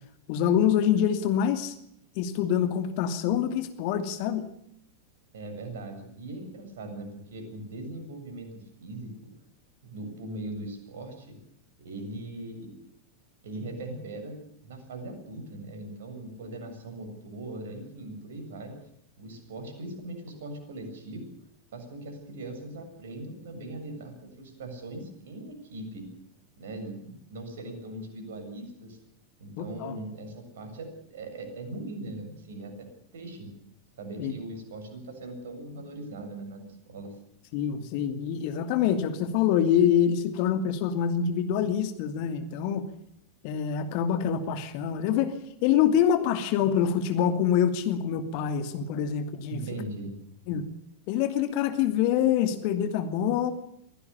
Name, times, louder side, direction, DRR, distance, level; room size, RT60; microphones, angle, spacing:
voice 1, 0.3-1.7 2.2-4.5 29.6-29.9 34.2-34.3 37.5-42.9 43.4-45.3 45.6-49.6 50.5-50.6 51.1-53.5, left 9 dB, 45° left, 9 dB, 2.6 m, -25 dB
voice 2, 5.3-9.1 9.8-11.4 11.8-12.7 13.4-18.8 19.2-21.2 21.7-26.1 26.6-29.0 29.4-32.9 33.1-33.5 34.0-37.1 49.5-50.1, right 2 dB, 60° right, 6 dB, 7.4 m, -40 dB
23.5 x 17.5 x 7.1 m, 0.75 s
figure-of-eight pair, 90°, 0 cm